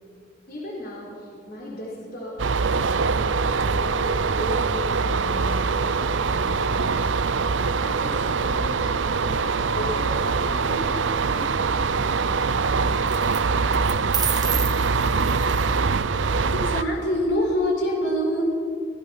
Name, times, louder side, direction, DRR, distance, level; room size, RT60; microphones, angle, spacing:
voice 1, 0.5-3.4 3.6-8.9 9.2-12.8, left 1 dB, 55° left, -4 dB, 4.2 m, -37 dB
sound 1, 2.4-16.8, right 4 dB, 90° right, 0.7 m, -23 dB
sound 2, 10.4-10.7 13.1-13.4 13.7-15.8, right 7 dB, 20° right, 1.7 m, -30 dB
voice 2, 16.5-18.4, equal, 80° left, 0 dB, 5.7 m, -24 dB
26.0 x 17.5 x 5.9 m, 2.5 s
head